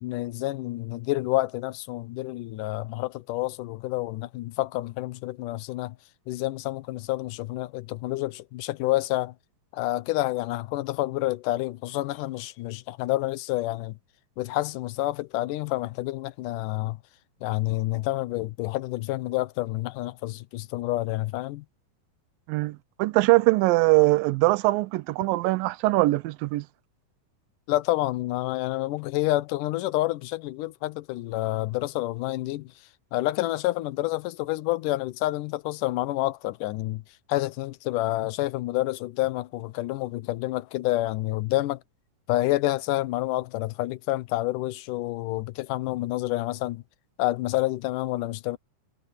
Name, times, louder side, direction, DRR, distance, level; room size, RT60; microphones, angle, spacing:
voice 1, 0.0-6.0 6.3-9.3 9.7-14.0 14.4-17.0 17.4-21.7 27.7-32.7 33.1-37.0 37.3-41.8 42.3-46.8 47.2-48.6, left 17 dB, 75° left, 2.2 m, -28 dB
voice 2, 22.5-26.6, right 21 dB, 85° right, 2.4 m, -22 dB
omnidirectional pair, 4.0 m